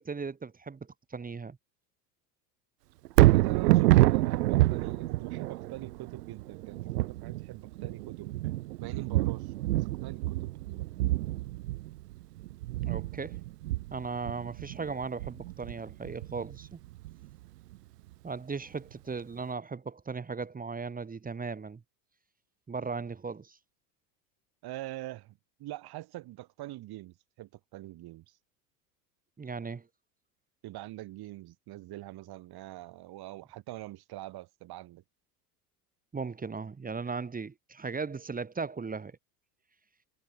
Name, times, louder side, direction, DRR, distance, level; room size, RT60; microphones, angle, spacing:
voice 1, 0.0-1.6 12.8-13.4 13.9-16.8 18.2-21.8 22.7-23.6 29.4-29.9 36.1-39.1, right 4 dB, 15° right, 1.7 m, -37 dB
Thunder, 3.1-17.3 17.7-17.8, right 17 dB, 75° right, 0.7 m, -27 dB
voice 2, 3.2-8.3 8.8-9.5 9.8-10.9 24.6-28.3 30.6-35.0, right 16 dB, 50° right, 5.1 m, -43 dB
hypercardioid pair, 75°, 48 cm